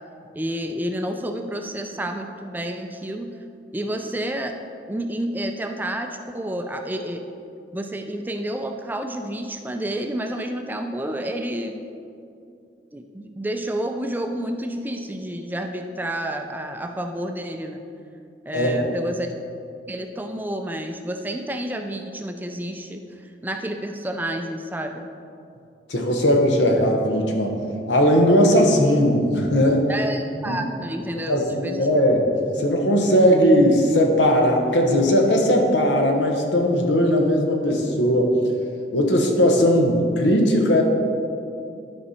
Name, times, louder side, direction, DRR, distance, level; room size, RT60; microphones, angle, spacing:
voice 1, 0.3-3.3 3.7-4.6 4.9-7.3 7.7-11.9 12.9-17.8 18.5-19.3 19.9-23.0 23.4-25.1 29.9-31.9, right 1 dB, 10° right, 5 dB, 0.4 m, -30 dB
voice 2, 18.5-18.9 25.9-27.5 27.9-29.9 30.5-30.6 31.3-32.2 32.6-38.3 38.9-40.8, equal, 90° left, 2 dB, 1.2 m, -18 dB
11.0 x 5.4 x 4.2 m, 2.6 s
head